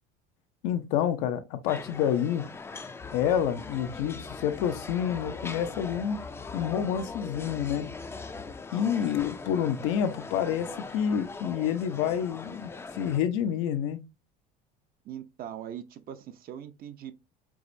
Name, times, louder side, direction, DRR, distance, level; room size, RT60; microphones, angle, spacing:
voice 1, 0.6-2.4 3.1-6.2 6.5-7.9 8.7-14.0, left 9 dB, 80° left, 0.6 m, -28 dB
sound 1, 1.7-13.2, left 4 dB, 15° left, 0.4 m, -41 dB
sound 2, 3.0-8.5, left 5 dB, 45° left, 0.7 m, -48 dB
voice 2, 15.0-17.1, right 10 dB, 50° right, 0.5 m, -41 dB
4.7 x 2.0 x 2.5 m
supercardioid pair, 100°, 20 cm